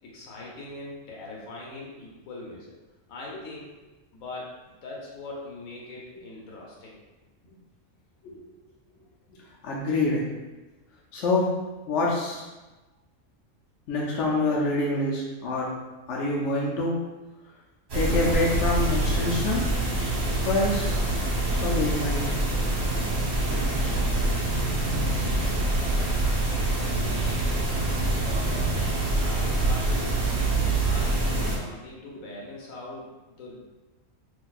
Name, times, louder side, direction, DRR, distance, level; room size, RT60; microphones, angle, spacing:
voice 1, 0.0-2.8 3.1-3.7 4.1-4.5 4.8-6.9 25.6-26.1 26.8-28.7 29.1-33.6, left 2 dB, 85° left, -3 dB, 1.1 m, -41 dB
voice 2, 9.3-10.3 11.1-11.5 11.9-12.5 13.9-15.7 16.1-17.0 17.9-19.7 20.4-21.0 21.5-22.3 23.5-23.8, left 2 dB, 65° left, -4 dB, 0.9 m, -26 dB
sound 1, 17.9-31.6, right 2 dB, 55° right, 1.1 m, -25 dB
3.9 x 2.7 x 2.4 m, 1.1 s
omnidirectional pair, 1.4 m